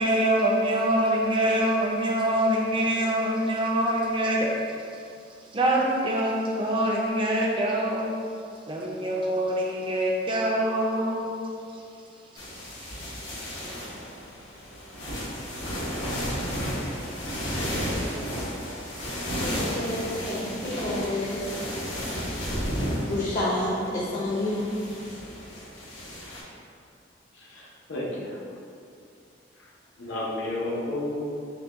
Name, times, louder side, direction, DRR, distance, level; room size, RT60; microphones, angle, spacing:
voice 1, 0.0-4.5 5.5-8.2 8.7-11.3, right 1 dB, 25° right, -2 dB, 0.5 m, -24 dB
sound 1, 12.3-26.4, equal, 75° left, 1.3 m, -33 dB
voice 2, 19.4-21.5 23.1-24.7, left 1 dB, 45° left, -8 dB, 0.7 m, -29 dB
voice 3, 27.3-28.4 29.6-29.7 30.0-31.3, left 1 dB, 90° left, -4 dB, 0.7 m, -32 dB
4.8 x 2.2 x 3.7 m, 2.4 s
head